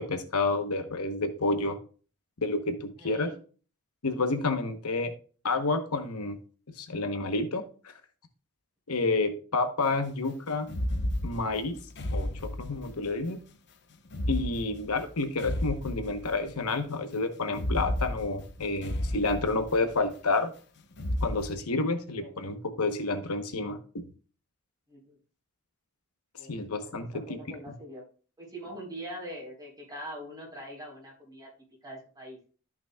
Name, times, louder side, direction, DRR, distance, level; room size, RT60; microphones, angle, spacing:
voice 1, 0.0-1.8 2.4-3.3 4.0-5.1 5.4-6.4 6.8-7.6 8.9-10.7 11.2-11.8 12.1-13.4 14.3-20.5 21.2-24.1 26.5-27.6, left 3 dB, 75° left, 7 dB, 1.0 m, -29 dB
voice 2, 3.0-3.4 14.5-14.7 22.2-22.3 24.9-25.2 26.3-26.5 26.8-28.0 28.4-31.5 31.8-32.4, equal, 20° right, -2 dB, 4.0 m, -43 dB
sound 1, 10.6-13.1 14.0-16.6 17.5-20.1 20.9-21.6, left 1 dB, 50° left, 0.9 m, -33 dB
14.0 x 6.0 x 2.3 m, 0.39 s
head